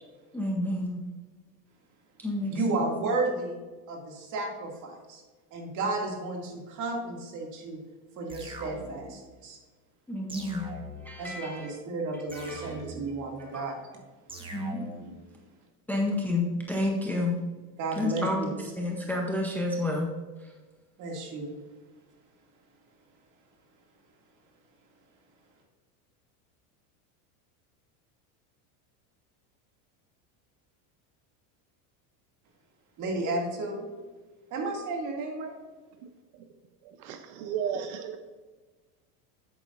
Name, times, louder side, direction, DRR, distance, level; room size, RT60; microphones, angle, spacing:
voice 1, 0.3-1.0 2.2-2.8 10.1-10.7 11.0-11.7 12.3-12.7 13.4-13.6 14.5-15.0 15.9-17.4 18.0-20.1 20.4-20.5, left 2 dB, 5° left, 0 dB, 0.6 m, -30 dB
voice 2, 2.5-3.6 3.9-5.2 5.5-7.8 8.2-9.6 11.2-13.8 15.0-15.1 17.8-18.5 21.0-21.5 33.0-33.9 34.5-35.6, right 3 dB, 40° right, 1 dB, 2.2 m, -32 dB
sound 1, 8.3-9.2 10.3-11.2 12.3-13.2 14.3-15.2, right 1 dB, 10° right, 1.2 m, -42 dB
voice 3, 36.8-38.2, right 8 dB, 70° right, 7 dB, 0.8 m, -34 dB
10.5 x 8.3 x 2.5 m, 1.3 s
supercardioid pair, 150°, 45 cm